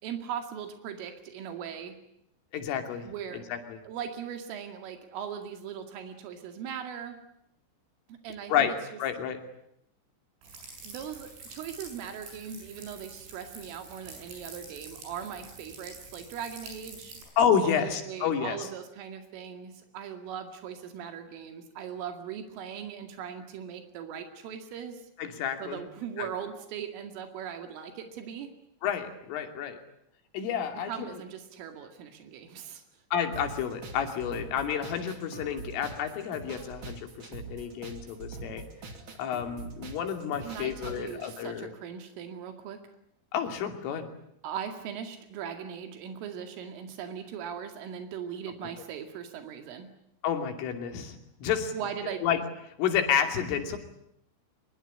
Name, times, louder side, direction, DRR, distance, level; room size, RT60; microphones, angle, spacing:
voice 1, 0.0-2.0 3.0-3.5 3.9-7.2 8.1-8.8 10.8-17.2 17.6-25.0 25.6-28.5 30.9-32.8 40.4-42.8 44.4-49.9 51.7-52.2, right 8 dB, 90° right, 6 dB, 4.8 m, -39 dB
voice 2, 2.5-3.1 3.3-3.8 8.5-8.7 9.0-9.4 17.4-18.6 25.2-25.8 26.2-26.3 28.8-29.8 30.3-30.9 33.1-38.6 39.2-41.7 43.3-44.1 50.2-51.7 52.2-52.4 52.8-53.8, left 8 dB, 90° left, 6 dB, 5.3 m, -30 dB
sound 1, 10.4-17.2, right 3 dB, 75° right, 9.7 m, -47 dB
sound 2, 33.3-41.3, right 3 dB, 35° right, 2.2 m, -44 dB
24.0 x 22.5 x 9.8 m, 0.76 s
omnidirectional pair, 5.6 m